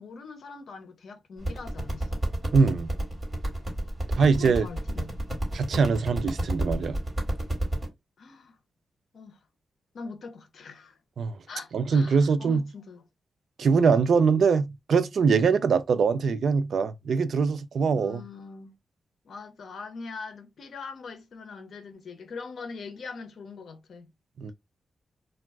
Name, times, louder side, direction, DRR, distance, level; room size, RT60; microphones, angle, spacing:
voice 1, 0.0-2.2 4.2-5.2 8.2-8.6 9.1-9.4 9.9-11.0 11.5-13.0 17.9-18.7 19.2-24.1, left 4 dB, 70° left, 0.7 m, -42 dB
sound 1, 1.4-7.9, right 1 dB, 20° right, 1.6 m, -30 dB
voice 2, 2.5-2.9 4.2-4.7 5.5-7.0 11.2-11.4 11.7-12.6 13.6-18.2 24.4-24.5, right 5 dB, 70° right, 0.3 m, -23 dB
2.3 x 2.3 x 3.4 m
wide cardioid pair, 125°, 0 cm